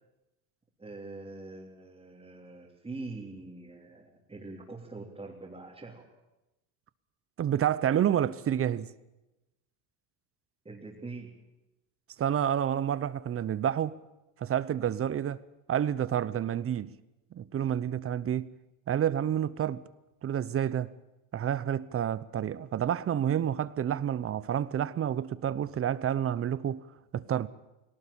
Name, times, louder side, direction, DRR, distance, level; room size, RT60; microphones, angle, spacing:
voice 1, 0.8-6.1 10.7-11.4, right 3 dB, 15° right, 3.4 m, -43 dB
voice 2, 7.4-8.9 12.2-14.0 14.4-15.4 15.7-16.9 17.4-18.5 18.9-19.8 20.2-20.9 21.3-26.9 27.1-27.5, right 9 dB, 35° right, 0.8 m, -29 dB
19.0 x 17.5 x 8.6 m
supercardioid pair, 110°, 41 cm